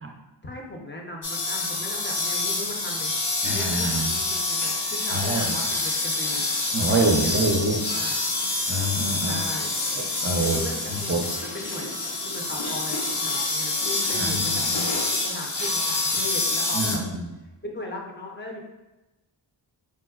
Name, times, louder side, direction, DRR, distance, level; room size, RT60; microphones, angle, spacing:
voice 1, 0.4-3.2 3.5-6.5 6.9-8.2 9.2-9.7 10.4-11.1 11.4-14.8 15.2-17.0 17.6-18.6, left 1 dB, 25° left, -1 dB, 0.5 m, -37 dB
sound 1, 1.2-17.0, left 2 dB, 75° left, 0.7 m, -27 dB
voice 2, 3.4-4.1 5.1-5.6 6.7-7.8 8.7-9.4 10.0-10.6 10.9-11.3 14.1-14.9 16.7-17.3, right 2 dB, 30° right, 1 dB, 0.4 m, -26 dB
4.5 x 2.0 x 2.3 m, 1.0 s
wide cardioid pair, 45°, 47 cm